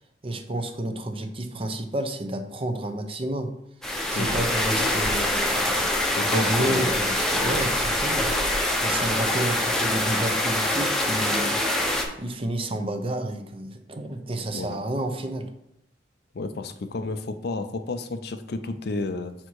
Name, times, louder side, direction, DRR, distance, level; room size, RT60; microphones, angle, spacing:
voice 1, 0.2-3.5 4.1-5.8 6.2-8.3 8.8-11.6 12.2-15.5, right 1 dB, 30° right, 6 dB, 0.7 m, -30 dB
sound 1, 3.8-12.0, left 1 dB, 5° left, 0.8 m, -24 dB
voice 2, 4.1-4.5 6.2-6.9 7.3-7.7 14.5-14.8 16.3-19.3, left 3 dB, 60° left, 10 dB, 0.5 m, -31 dB
5.7 x 4.4 x 4.7 m, 0.77 s
head